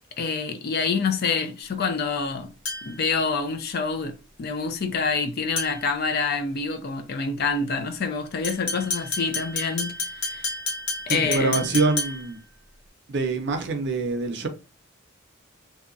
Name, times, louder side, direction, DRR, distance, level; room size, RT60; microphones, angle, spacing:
voice 1, 0.2-2.5 2.9-10.5 11.1-11.7, left 4 dB, 50° left, 0.4 m, -27 dB
sound 1, 2.7-3.1 5.6-6.0 8.4-12.4, left 3 dB, 70° left, 1.0 m, -31 dB
voice 2, 11.1-12.4 13.1-14.5, right 3 dB, 55° right, 0.5 m, -25 dB
2.7 x 2.1 x 2.5 m
head